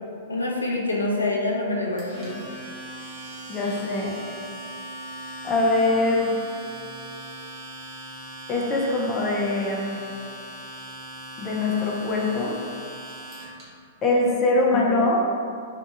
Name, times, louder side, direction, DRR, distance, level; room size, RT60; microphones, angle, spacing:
voice 1, 0.3-2.4 14.7-15.0, left 2 dB, 85° left, -2 dB, 0.3 m, -26 dB
Domestic sounds home sounds, 2.0-13.6, right 1 dB, 35° right, 0.8 m, -39 dB
voice 2, 3.5-4.2 5.4-6.3 8.5-10.0 11.4-12.5 14.0-15.2, left 2 dB, 25° left, -2 dB, 0.5 m, -23 dB
2.6 x 2.3 x 2.5 m, 2.3 s
figure-of-eight pair, 105°, 0 cm